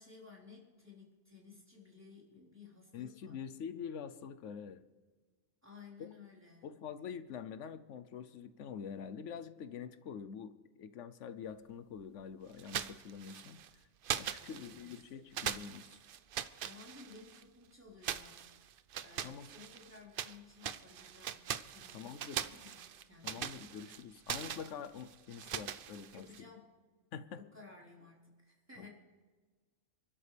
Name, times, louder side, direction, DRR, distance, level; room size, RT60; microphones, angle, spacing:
voice 1, 0.0-3.4 5.6-6.7 14.4-15.0 16.6-18.4 19.0-23.6 26.1-26.7 27.4-28.9, left 4 dB, 15° right, -7 dB, 4.2 m, -56 dB
voice 2, 2.9-4.8 6.0-6.1 6.6-13.6 14.1-16.0 19.2-19.5 21.9-22.5 23.2-26.5 27.1-27.4 28.8-28.9, left 7 dB, 85° left, 12 dB, 1.1 m, -46 dB
sound 1, 12.6-13.7 14.0-15.0 15.3-17.4 18.0-20.4 20.6-26.4, right 9 dB, 55° right, 0.7 m, -41 dB
28.5 x 12.5 x 3.4 m, 1.4 s
omnidirectional pair, 1.2 m